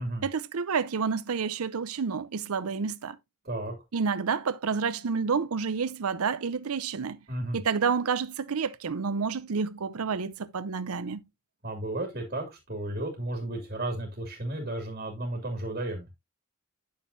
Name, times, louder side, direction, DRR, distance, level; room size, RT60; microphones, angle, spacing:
voice 1, 0.2-3.2 3.9-7.2 7.5-11.2, right 5 dB, 90° right, 0.6 m, -29 dB
voice 2, 7.3-7.6 11.6-16.1, right 1 dB, 40° right, 2.2 m, -33 dB
9.1 x 6.5 x 2.6 m
head